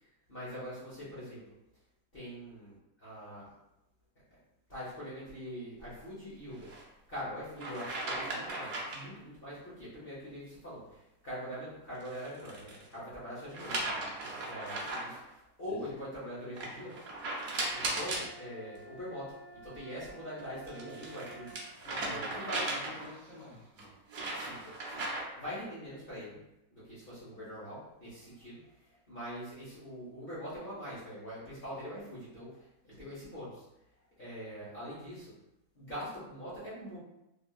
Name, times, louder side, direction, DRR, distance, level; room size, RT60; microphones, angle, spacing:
voice 1, 0.3-1.4 2.1-2.8 3.0-3.5 4.7-6.7 7.1-10.8 11.2-13.8 14.2-15.2 15.6-16.9 17.4-19.3 19.6-21.7 22.0-22.6 24.3-25.0 25.4-26.4 26.7-28.6 29.1-32.5 33.0-33.6 34.2-35.3 35.7-37.0, equal, 40° left, -10 dB, 1.0 m, -43 dB
sound 1, 6.6-6.8 7.6-9.1 11.9-12.9 13.5-15.2 16.6-18.3 20.4-23.2 23.8-25.4, right 2 dB, 60° right, 0.9 m, -37 dB
sound 2, 17.5-21.7, right 2 dB, 30° right, 1.1 m, -52 dB
voice 2, 21.8-23.9, left 2 dB, ahead, -8 dB, 0.9 m, -49 dB
3.3 x 2.7 x 2.3 m, 0.88 s
omnidirectional pair, 1.8 m